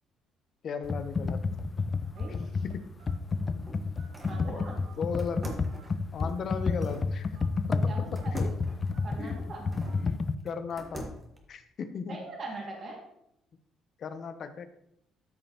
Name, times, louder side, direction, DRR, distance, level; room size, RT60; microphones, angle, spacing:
voice 1, 0.6-1.4 2.6-2.9 4.4-4.7 5.0-5.6 6.1-7.3 7.7-7.8 8.1-8.6 9.2-9.5 10.4-11.1 11.5-12.3 14.0-14.7, left 6 dB, 50° left, 9 dB, 0.8 m, -36 dB
Computer keyboard, 0.8-10.3, left 4 dB, 30° left, 0.4 m, -30 dB
voice 2, 2.0-2.6 4.3-4.8 7.7-8.3 9.0-9.7 12.1-13.0, right 3 dB, 45° right, -1 dB, 2.3 m, -41 dB
Telephone, 2.2-2.5 3.0-3.2 4.0-4.4 4.8-5.0 5.7-5.9 6.5-6.7 7.3-7.5 8.1-8.2 8.9-9.2 9.9-10.0, right 6 dB, 70° right, 2.1 m, -57 dB
sound 1, 3.3-4.5 5.2-7.1 8.2-10.0 10.5-11.4, equal, 20° right, 1.5 m, -43 dB
13.0 x 5.2 x 3.0 m, 0.78 s
cardioid pair, 125°, 0 cm